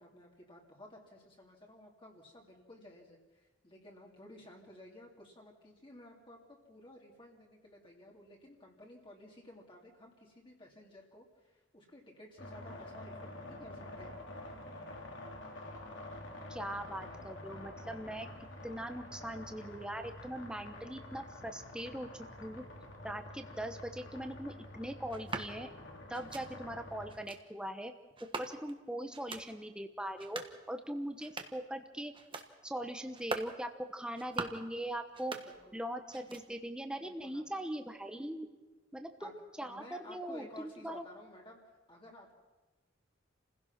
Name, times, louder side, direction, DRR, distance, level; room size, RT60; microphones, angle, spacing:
voice 1, 0.0-14.1 35.3-35.8 37.0-37.4 39.2-39.3 39.6-41.6 41.9-42.3, left 1 dB, 25° left, -1 dB, 2.6 m, -54 dB
sound 1, 12.4-27.2, left 1 dB, 70° left, 3.1 m, -48 dB
voice 2, 16.5-18.3 18.6-22.1 22.4-22.6 23.0-25.7 26.1-27.9 28.4-30.4 30.7-32.1 32.6-35.4 35.7-38.5 38.9-41.0, right 1 dB, 5° right, 6 dB, 1.0 m, -41 dB
sound 2, 25.1-25.5 26.1-26.5 27.1-27.4 28.2-28.8 29.1-29.5 30.1-30.6 31.1-31.7 32.1-32.5 33.1-33.5 34.1-34.7 35.1-35.8 36.1-36.7, right 3 dB, 25° right, 1.4 m, -43 dB
28.5 x 16.0 x 6.0 m, 1.2 s
head